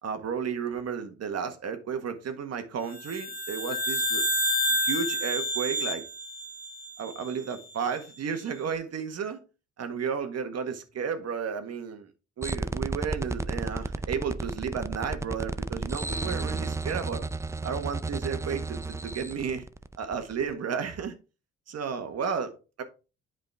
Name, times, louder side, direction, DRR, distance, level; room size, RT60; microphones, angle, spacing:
voice 1, 0.0-4.2 4.8-6.0 7.0-9.4 9.8-12.1 12.4-17.3 17.6-19.7 20.0-21.1 21.7-22.8, right 6 dB, 55° right, 1.5 m, -33 dB
sound 1, 2.9-7.5, equal, 30° left, 2.3 m, -29 dB
sound 2, 12.4-20.5, right 3 dB, 10° right, 0.4 m, -33 dB
9.1 x 5.1 x 3.4 m
cardioid pair, 90°, 30 cm